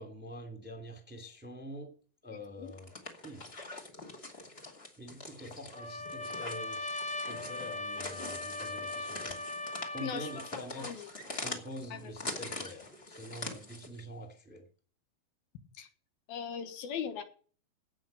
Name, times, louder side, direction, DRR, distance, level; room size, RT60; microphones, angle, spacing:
voice 1, 0.0-2.0 2.2-2.9 3.2-3.5 4.0-4.2 5.0-9.5 9.9-11.1 11.4-14.7, equal, 5° right, 2.0 m, -46 dB
sound 1, 2.7-14.0, left 2 dB, 20° left, 1.9 m, -44 dB
Trumpet, 5.7-10.5, left 2 dB, 35° left, 0.6 m, -39 dB
voice 2, 10.0-11.1 11.9-12.1 15.8-15.9 16.3-17.2, left 7 dB, 80° left, 3.3 m, -39 dB
17.0 x 6.2 x 6.8 m
omnidirectional pair, 4.3 m